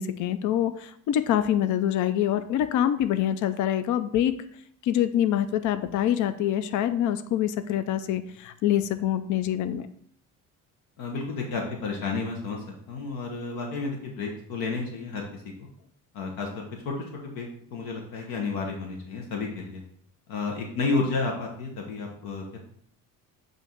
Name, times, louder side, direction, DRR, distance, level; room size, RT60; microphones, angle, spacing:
voice 1, 0.0-4.3 4.8-9.9, left 11 dB, 60° left, 11 dB, 0.5 m, -25 dB
voice 2, 11.0-15.7 16.1-19.8 20.3-22.6, left 3 dB, 80° left, 1 dB, 1.2 m, -31 dB
7.9 x 2.7 x 4.5 m, 0.65 s
cardioid pair, 125°, 35 cm